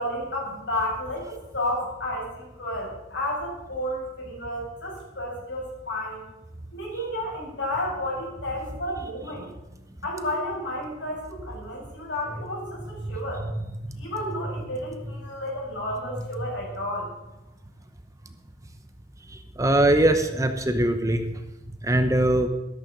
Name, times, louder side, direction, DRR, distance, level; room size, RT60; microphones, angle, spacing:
voice 1, 0.0-6.2 6.7-9.5 10.0-13.4 14.0-17.1, left 1 dB, 75° left, -2 dB, 6.4 m, -31 dB
voice 2, 19.6-21.2 21.8-22.5, right 1 dB, 15° right, 7 dB, 0.9 m, -21 dB
13.0 x 12.0 x 5.3 m, 0.96 s
head